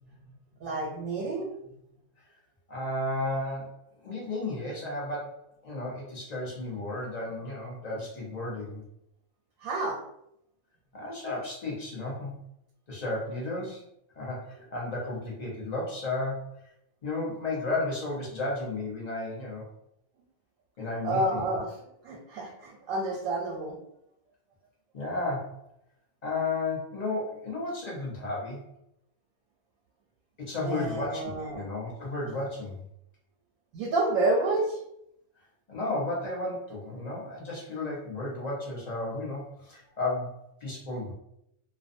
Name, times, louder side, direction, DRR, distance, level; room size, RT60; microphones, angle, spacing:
voice 1, 0.6-1.5 9.6-10.0 21.0-21.7 22.0-23.8 30.6-31.6 33.7-34.8, right 2 dB, 90° right, -1 dB, 1.0 m, -29 dB
voice 2, 2.7-3.7 4.0-5.4 5.6-8.8 10.9-12.3 12.9-13.8 14.2-16.5 17.0-19.6 20.8-21.4 24.9-25.5 26.2-28.6 30.4-32.8 35.7-41.1, left 2 dB, 40° left, -4 dB, 0.6 m, -33 dB
2.5 x 2.2 x 2.5 m, 0.77 s
omnidirectional pair, 1.4 m